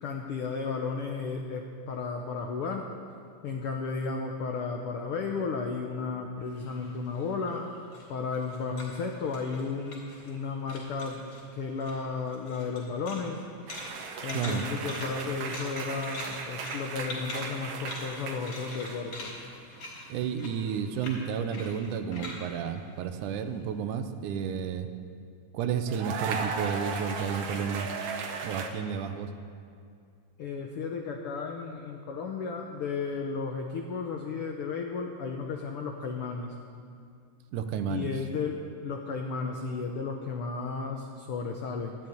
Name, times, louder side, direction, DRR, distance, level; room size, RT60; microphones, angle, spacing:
voice 1, 0.0-2.9 3.4-7.7 8.1-11.2 11.5-13.4 14.2-19.3 30.4-36.5 37.9-42.0, left 4 dB, 80° left, 3 dB, 1.2 m, -34 dB
sound 1, 6.5-10.4 10.7-11.4 11.8-23.6, left 2 dB, 60° left, 5.4 m, -44 dB
sound 2, 13.7-19.2 19.4-19.9 21.8-22.0 25.9-28.7, right 5 dB, 60° right, 1.8 m, -36 dB
voice 2, 14.3-14.7 20.1-24.9 25.5-27.9 28.4-29.3 37.5-38.1, right 7 dB, 80° right, 9 dB, 2.2 m, -31 dB
13.0 x 8.7 x 9.3 m, 2.3 s
omnidirectional pair, 3.7 m